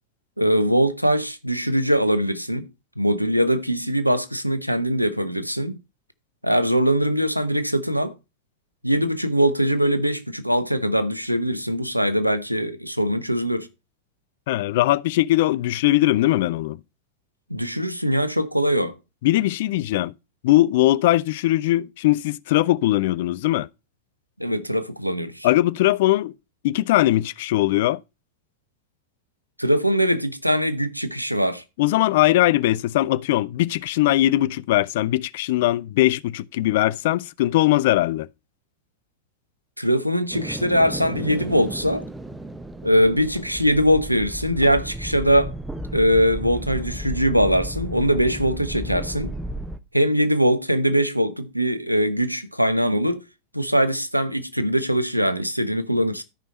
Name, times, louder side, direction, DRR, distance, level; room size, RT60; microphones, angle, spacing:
voice 1, 0.4-2.7 3.0-5.8 6.4-8.1 8.8-13.7 17.5-19.0 24.4-25.5 29.6-31.6 39.8-42.1 42.8-45.5 45.9-49.3 49.9-53.2 53.5-56.2, equal, 90° right, 0.8 m, -21 dB
voice 2, 14.5-16.8 19.2-20.1 20.4-23.7 25.4-26.3 26.6-28.0 31.8-38.3, left 16 dB, 55° left, 0.4 m, -20 dB
sound 1, 40.3-49.8, right 1 dB, 10° right, 0.9 m, -33 dB
12.5 x 5.3 x 4.2 m
figure-of-eight pair, 90°, 0 cm